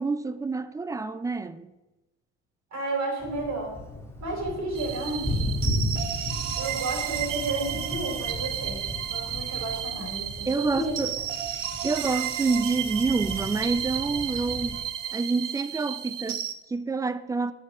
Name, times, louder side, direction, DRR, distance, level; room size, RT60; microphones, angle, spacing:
voice 1, 0.0-1.7 10.5-11.1 11.8-14.8 15.1-17.5, right 4 dB, 10° right, 0.4 m, -28 dB
voice 2, 2.7-3.8 4.2-5.5 6.6-8.8 9.1-11.1, right 2 dB, 45° right, 3.4 m, -32 dB
Thunder, 3.2-14.8, left 1 dB, 5° left, 1.6 m, -35 dB
sound 1, 4.8-16.5, right 10 dB, 75° right, 0.8 m, -33 dB
8.1 x 5.8 x 5.3 m
figure-of-eight pair, 55°, 38 cm